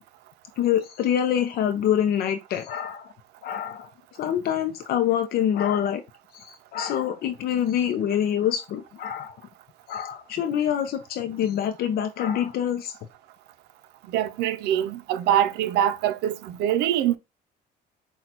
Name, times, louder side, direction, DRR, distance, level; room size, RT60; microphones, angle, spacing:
voice 1, 0.6-3.1 3.4-3.9 4.2-6.0 6.3-9.4 9.9-13.0, left 9 dB, 65° left, 0.5 m, -25 dB
voice 2, 14.1-17.2, right 11 dB, 85° right, 0.5 m, -24 dB
5.9 x 2.3 x 2.8 m
cardioid pair, 110°, 17 cm